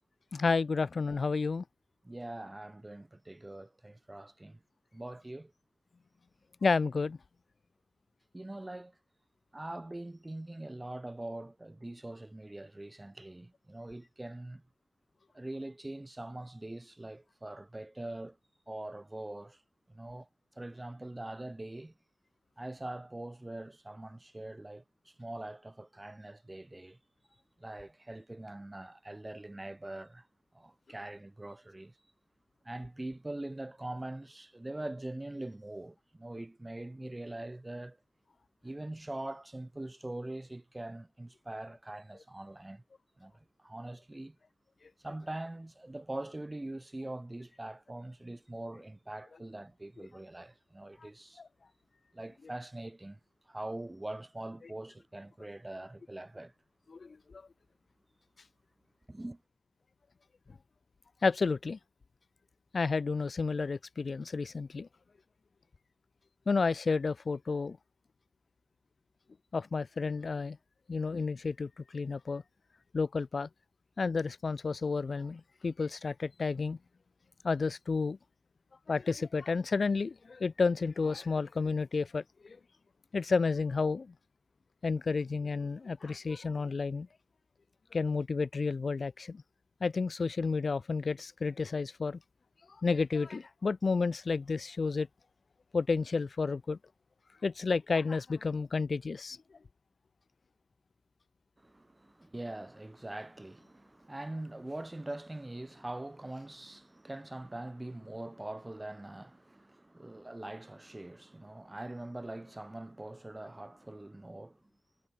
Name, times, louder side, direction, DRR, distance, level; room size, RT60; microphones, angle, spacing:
voice 1, 0.3-1.6 6.6-7.2 51.4-51.5 56.9-57.4 61.2-61.8 62.7-64.9 66.5-67.8 69.5-70.6 70.9-72.4 72.9-73.5 74.0-76.8 77.4-78.2 78.9-82.6 83.1-84.1 84.8-87.1 87.9-89.4 89.8-92.2 92.8-95.1 95.7-96.8 97.4-99.4, left 4 dB, 60° left, 0.9 m, -31 dB
voice 2, 2.0-4.6 4.9-5.5 8.3-9.0 9.5-14.6 15.3-18.4 18.7-19.6 19.9-20.3 20.6-21.9 22.6-27.0 27.6-30.3 30.5-31.9 32.6-38.0 38.6-42.8 43.2-43.3 43.6-44.4 45.0-51.4 52.1-53.2 53.5-56.5 59.1-59.4 101.6-114.6, right 1 dB, 20° right, 5.6 m, -43 dB
wide cardioid pair, 80°, 0 cm